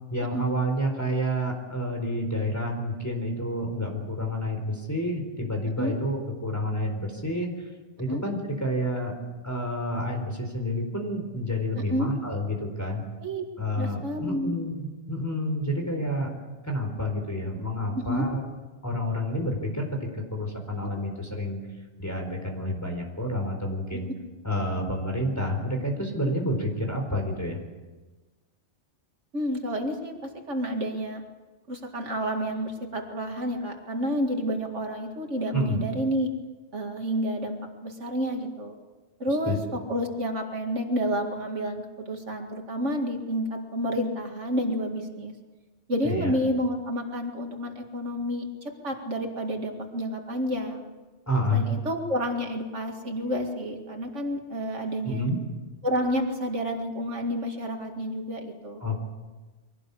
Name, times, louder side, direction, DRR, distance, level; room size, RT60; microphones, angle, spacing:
voice 1, 0.1-7.5 8.0-9.1 9.4-13.0 13.6-16.3 16.7-18.4 18.8-21.6 22.0-24.1 24.4-27.6 35.5-35.8 39.5-39.6 46.0-46.3 51.3-51.6 55.0-55.4 58.8-59.0, equal, 15° left, 2 dB, 4.4 m, -29 dB
voice 2, 11.8-12.1 13.2-13.4 13.8-14.6 17.9-18.3 29.3-31.2 31.7-36.3 36.7-38.8 39.2-45.3 45.9-50.8 51.5-55.3 55.8-58.8, equal, 75° right, 3 dB, 2.5 m, -30 dB
23.5 x 18.0 x 8.4 m, 1.2 s
omnidirectional pair, 1.2 m